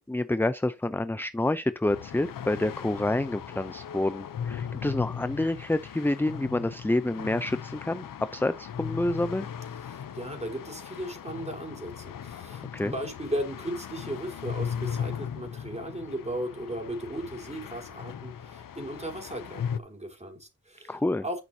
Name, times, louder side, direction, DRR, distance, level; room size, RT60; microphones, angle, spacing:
voice 1, 0.1-9.5 12.7-12.9 20.9-21.2, left 1 dB, 5° left, 0.6 m, -28 dB
sound 1, 1.9-19.8, left 8 dB, 85° left, 0.7 m, -38 dB
voice 2, 9.8-21.0 21.2-21.4, right 1 dB, 20° right, 4.2 m, -36 dB
11.0 x 6.0 x 2.8 m
cardioid pair, 65°, 32 cm